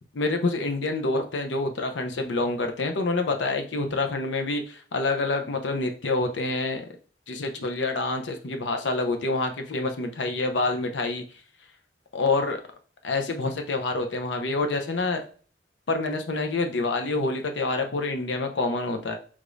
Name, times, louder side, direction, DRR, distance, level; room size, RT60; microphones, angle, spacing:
voice 1, 0.2-6.8 7.3-11.2 12.1-12.6 13.0-15.2 15.9-19.2, left 3 dB, 85° left, 5 dB, 0.7 m, -27 dB
5.0 x 3.5 x 2.5 m, 0.41 s
head